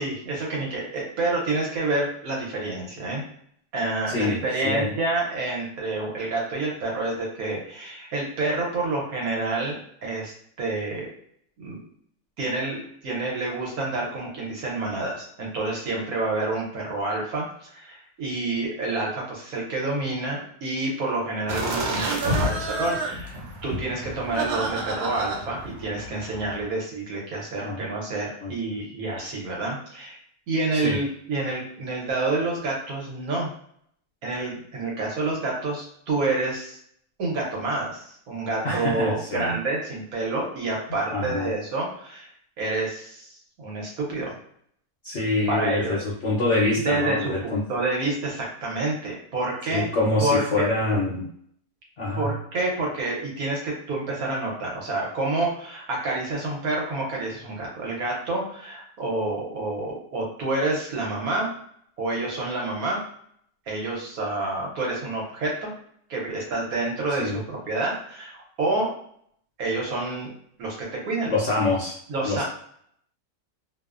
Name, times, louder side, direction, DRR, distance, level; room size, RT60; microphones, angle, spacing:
voice 1, 0.0-3.2 3.7-10.3 10.6-11.1 11.6-11.9 12.4-30.2 30.5-33.5 34.2-36.8 37.2-42.3 42.6-44.3 45.5-46.0 46.8-49.9 50.2-50.7 52.2-61.5 62.0-63.0 63.7-65.7 66.1-68.9 69.6-70.3 70.6-71.3 72.1-72.4, right 2 dB, 65° right, -2 dB, 1.2 m, -28 dB
voice 2, 4.1-4.9 27.6-27.9 28.4-28.5 30.7-31.0 38.6-39.6 41.1-41.5 45.0-47.6 49.7-51.3 52.0-52.3 67.2-67.4 71.3-72.0 72.2-72.4, left 2 dB, 65° left, -5 dB, 0.7 m, -25 dB
sound 1, 21.5-26.7, right 1 dB, 85° right, 1.2 m, -29 dB
2.8 x 2.0 x 2.3 m, 0.65 s
omnidirectional pair, 1.8 m